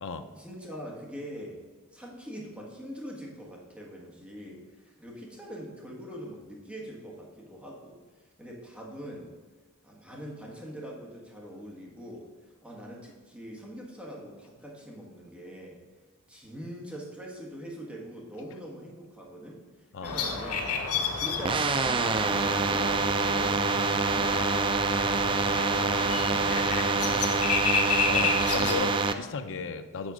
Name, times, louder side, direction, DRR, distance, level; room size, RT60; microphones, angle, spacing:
voice 1, 0.4-1.6 1.9-8.0 8.4-9.3 9.8-12.3 12.6-15.8 16.3-19.6 20.0-20.7 21.1-22.9 25.1-27.6, equal, 5° right, -2 dB, 1.4 m, -43 dB
sound 1, 20.0-28.7, left 4 dB, 80° left, 1.1 m, -31 dB
sound 2, 21.4-29.1, right 4 dB, 20° right, 0.3 m, -26 dB
voice 2, 28.0-30.1, left 5 dB, 60° left, 8 dB, 0.6 m, -35 dB
7.1 x 4.4 x 6.2 m, 1.3 s
head